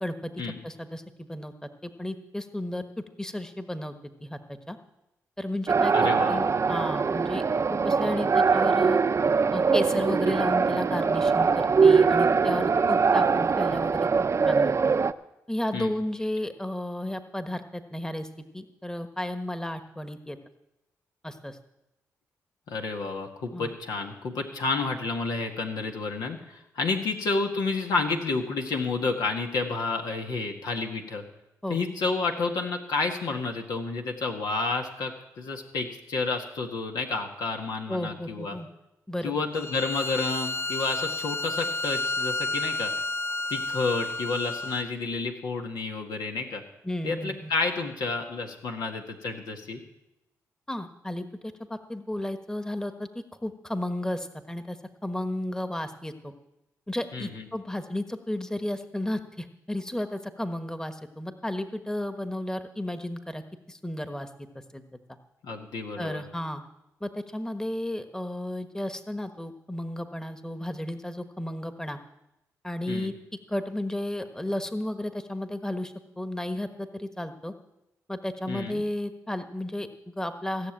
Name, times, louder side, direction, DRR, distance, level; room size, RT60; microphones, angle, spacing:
voice 1, 0.0-0.3 0.6-2.8 3.2-3.9 4.2-4.8 5.4-7.4 7.7-9.0 9.5-14.7 15.5-18.3 18.5-20.4 21.2-21.6 23.5-23.7 31.6-31.8 37.9-38.7 39.1-39.3 46.8-47.5 50.7-51.3 51.7-53.1 53.4-54.8 55.0-56.3 56.9-64.3 64.7-64.8 66.0-66.6 67.0-72.0 72.6-73.1 73.5-77.5 78.1-80.7, left 1 dB, 10° left, 8 dB, 1.3 m, -33 dB
sound 1, 5.7-15.1, right 5 dB, 45° right, 0.6 m, -22 dB
voice 2, 5.9-6.6 15.7-15.9 22.7-31.2 31.7-38.6 39.2-42.9 43.5-46.6 47.0-49.8 57.1-57.4 65.4-66.2 72.9-73.1 78.5-78.8, left 3 dB, 80° left, 2 dB, 1.8 m, -30 dB
Bowed string instrument, 39.5-44.9, left 2 dB, 35° left, 0.5 m, -31 dB
16.5 x 6.7 x 9.0 m, 0.89 s
supercardioid pair, 50°, 7 cm